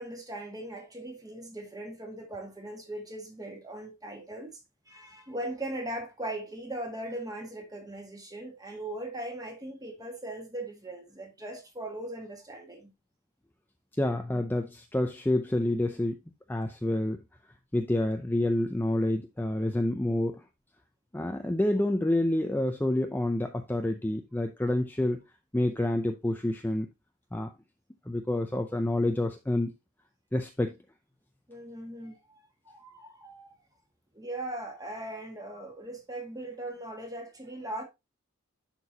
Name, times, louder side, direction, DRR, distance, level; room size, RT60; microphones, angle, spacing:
voice 1, 0.0-4.6 4.9-12.9 31.5-33.5 34.1-37.8, right 1 dB, 15° right, 1.8 m, -39 dB
voice 2, 14.0-16.2 16.5-17.2 17.7-20.4 21.1-25.2 25.5-26.9 27.3-27.5 28.1-29.7 30.3-30.7, left 1 dB, 10° left, 0.5 m, -28 dB
10.5 x 4.5 x 2.8 m
head